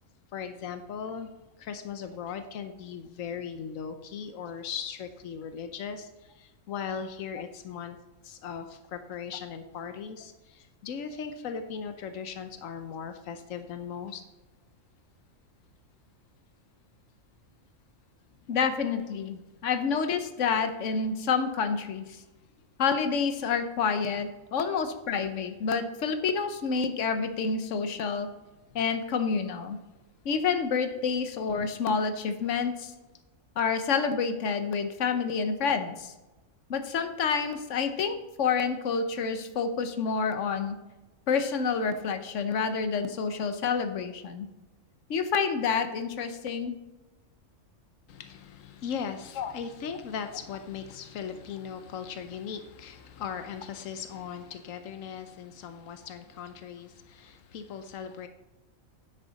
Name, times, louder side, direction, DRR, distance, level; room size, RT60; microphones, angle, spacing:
voice 1, 0.3-1.3 1.6-8.0 8.2-14.2 48.1-58.3, left 7 dB, 90° left, 8 dB, 1.1 m, -38 dB
voice 2, 18.5-22.2 22.8-28.3 28.7-29.8 30.2-32.9 33.6-36.1 36.7-40.7 41.3-44.5 45.1-46.8 49.4-49.5, left 5 dB, 70° left, 9 dB, 1.2 m, -28 dB
10.0 x 8.1 x 4.0 m, 1.1 s
omnidirectional pair, 1.3 m